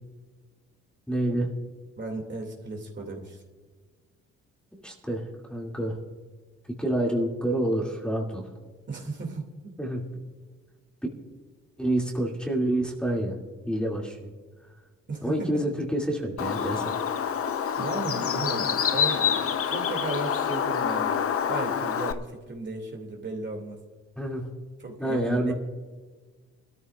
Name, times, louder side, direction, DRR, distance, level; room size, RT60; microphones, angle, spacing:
voice 1, 1.1-1.5 4.7-6.0 6.7-8.4 9.8-10.0 11.8-13.4 13.7-14.3 15.2-16.9 24.2-24.5 25.0-25.5, right 1 dB, 5° left, -2 dB, 2.5 m, -28 dB
voice 2, 2.0-3.4 8.9-9.8 15.1-15.6 17.8-21.1 21.5-23.8 24.8-25.5, right 3 dB, 40° right, 2 dB, 2.5 m, -35 dB
Bird, 16.4-22.1, left 7 dB, 50° left, 0.8 m, -27 dB
22.0 x 13.5 x 2.4 m, 1.4 s
cardioid pair, 90°, 30 cm